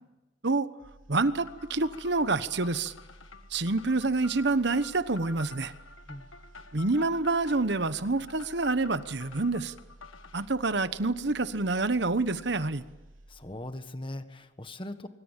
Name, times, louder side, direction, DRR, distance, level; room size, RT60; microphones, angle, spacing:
sound 1, 0.8-13.9 14.2-14.5, right 1 dB, 90° right, 3.9 m, -54 dB
voice 1, 1.1-2.9 3.5-5.7 6.7-9.7 10.3-12.8, right 3 dB, 55° right, 13 dB, 1.1 m, -27 dB
sound 2, 1.2-10.5, left 4 dB, 80° left, 1.7 m, -50 dB
voice 2, 13.3-15.1, left 1 dB, 25° left, 9 dB, 1.5 m, -40 dB
25.5 x 24.5 x 7.4 m, 1.0 s
head